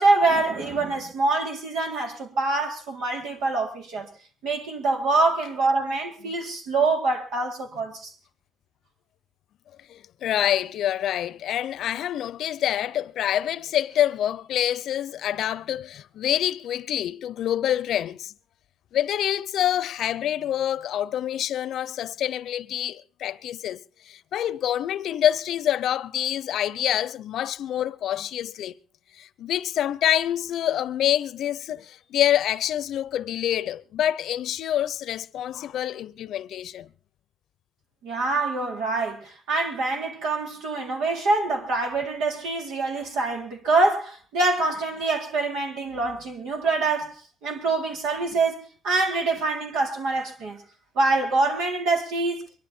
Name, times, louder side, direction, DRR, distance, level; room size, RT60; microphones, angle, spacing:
voice 1, 0.0-4.1 4.4-8.1 38.0-47.1 47.4-50.6 51.0-52.4, right 3 dB, 90° right, 3.9 m, -25 dB
voice 2, 9.9-18.3 18.9-28.7 29.2-36.9, left 11 dB, 75° left, 0.7 m, -26 dB
23.0 x 12.0 x 4.4 m
cardioid pair, 90°, 0 cm